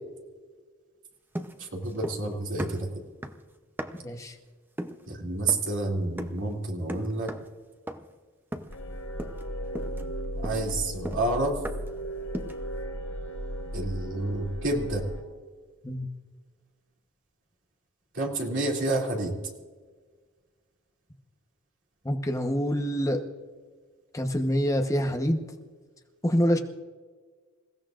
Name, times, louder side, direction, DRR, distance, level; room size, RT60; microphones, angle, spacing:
sound 1, 1.3-2.3 2.6-4.2 4.8-5.1 5.5-5.8 6.2-6.5 6.9-7.6 7.9-8.2 8.5-8.9 9.2-9.5 9.7-12.0 12.3-12.7, equal, 10° right, 0.7 m, -38 dB
voice 1, 1.6-3.0 5.1-7.3 10.4-11.6 13.7-15.0 18.1-19.4, right 2 dB, 60° right, 0 dB, 2.7 m, -29 dB
voice 2, 3.9-4.3 15.8-16.1 22.0-23.2 24.1-25.4 26.2-26.6, equal, 15° left, 3 dB, 1.0 m, -26 dB
sound 2, 8.7-15.2, equal, 90° left, 5.6 m, -36 dB
28.0 x 16.0 x 2.5 m, 1.5 s
head